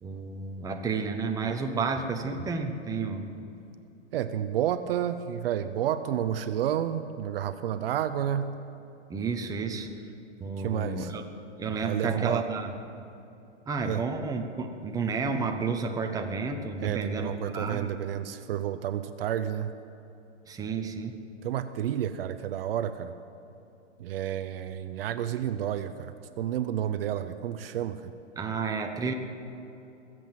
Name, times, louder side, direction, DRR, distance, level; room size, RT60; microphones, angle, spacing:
voice 1, 0.0-3.3 9.1-9.9 10.4-11.2 11.6-12.7 13.7-17.9 20.5-21.2 28.4-29.1, right 4 dB, 10° right, 4 dB, 1.0 m, -31 dB
voice 2, 4.1-8.6 10.6-11.1 11.8-12.4 13.8-14.0 16.8-19.7 21.4-23.1 24.0-28.1, right 10 dB, 55° right, 11 dB, 0.7 m, -30 dB
22.0 x 7.9 x 7.7 m, 2.8 s
hypercardioid pair, 125°, 35 cm